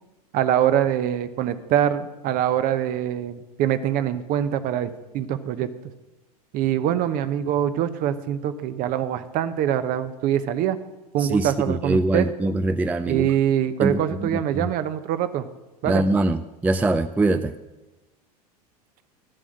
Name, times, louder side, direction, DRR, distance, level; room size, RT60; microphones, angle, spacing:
voice 1, 0.3-5.7 6.5-10.8 11.1-12.2 13.1-15.5 15.8-16.0, right 10 dB, 45° right, 12 dB, 0.9 m, -24 dB
voice 2, 11.2-13.3 13.8-14.3 14.5-14.7 15.9-17.5, right 2 dB, 10° right, 10 dB, 0.4 m, -23 dB
12.0 x 7.7 x 6.5 m, 1.1 s
hypercardioid pair, 90°, 20 cm